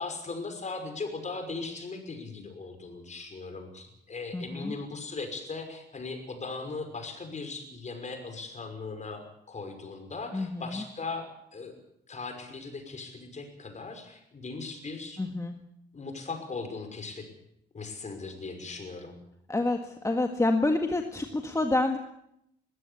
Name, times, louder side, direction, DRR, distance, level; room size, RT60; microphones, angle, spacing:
voice 1, 0.0-11.7 12.1-15.2 15.9-17.3 17.7-19.2, left 3 dB, 35° left, 6 dB, 5.8 m, -38 dB
voice 2, 4.3-4.8 10.3-10.8 15.2-15.6 19.5-22.0, left 2 dB, 15° left, 5 dB, 1.8 m, -28 dB
21.5 x 16.0 x 8.4 m, 0.79 s
cardioid pair, 90°, 20 cm